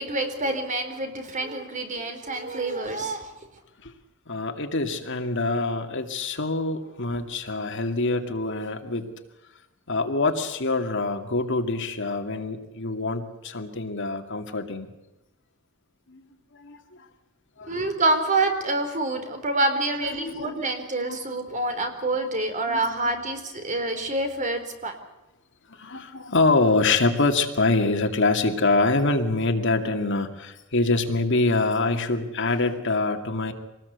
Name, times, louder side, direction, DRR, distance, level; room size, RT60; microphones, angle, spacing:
voice 1, 0.0-3.3 17.7-24.9, right 2 dB, 35° right, 6 dB, 4.0 m, -27 dB
voice 2, 4.3-9.1 9.9-14.9 16.1-16.2 16.5-16.8 17.6-17.8 19.7-20.7 21.0-21.2 22.7-22.8 23.9-24.1 25.7-33.5, left 3 dB, 60° left, 6 dB, 2.3 m, -25 dB
26.0 x 19.5 x 8.2 m, 0.98 s
head